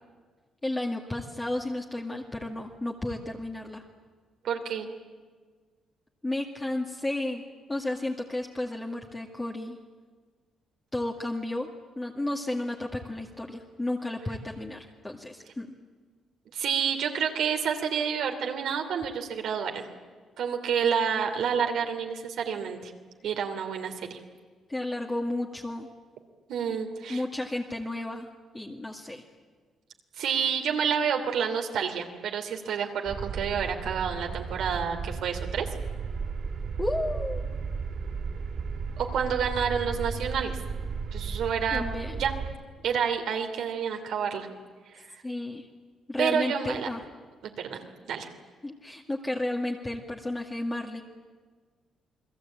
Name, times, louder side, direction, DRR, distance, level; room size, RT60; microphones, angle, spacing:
voice 1, 0.6-3.8 6.2-7.4 7.7-9.8 10.9-11.7 12.0-15.7 24.7-25.9 26.7-26.8 27.1-28.3 28.5-29.2 36.8-37.4 41.7-42.1 45.2-45.7 46.1-47.0 48.6-51.0, left 1 dB, 15° left, 0 dB, 2.1 m, -32 dB
voice 2, 4.4-4.9 16.5-19.9 20.4-22.9 23.2-24.2 26.5-27.2 30.2-35.7 39.0-40.6 41.1-41.8 42.2-42.3 42.8-44.5 44.9-45.1 46.2-46.9 47.4-47.8 48.1-48.3, right 7 dB, 75° right, 4 dB, 2.9 m, -29 dB
sound 1, 33.1-42.5, right 5 dB, 55° right, 3.5 m, -34 dB
29.0 x 20.5 x 8.8 m, 1.5 s
cardioid pair, 115°, 0 cm